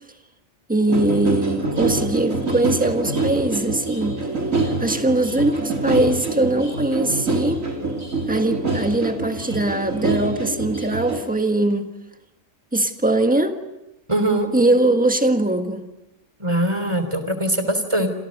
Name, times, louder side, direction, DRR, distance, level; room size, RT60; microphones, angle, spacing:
voice 1, 0.7-4.2 4.8-7.6 8.3-11.9 12.7-13.6 14.5-15.9, right 1 dB, 5° right, 6 dB, 1.6 m, -21 dB
sound 1, 0.9-11.2, right 3 dB, 85° right, 3.9 m, -25 dB
voice 2, 14.1-14.5 16.4-18.1, right 1 dB, 20° right, 8 dB, 3.5 m, -21 dB
28.0 x 28.0 x 5.4 m, 0.93 s
omnidirectional pair, 1.3 m